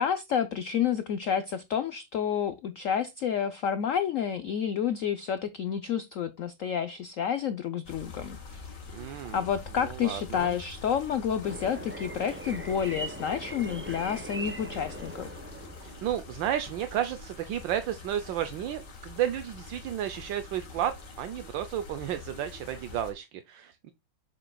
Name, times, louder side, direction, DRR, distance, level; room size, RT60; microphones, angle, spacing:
voice 1, 0.0-8.7 9.3-15.3, left 8 dB, 90° left, 0.7 m, -30 dB
sound 1, 7.8-23.1, left 3 dB, 60° left, 2.4 m, -45 dB
voice 2, 8.9-9.5 9.8-10.6 15.8-23.9, right 11 dB, 75° right, 1.4 m, -32 dB
sound 2, 11.4-16.3, right 1 dB, 20° right, 0.3 m, -41 dB
7.5 x 6.7 x 2.2 m
omnidirectional pair, 2.1 m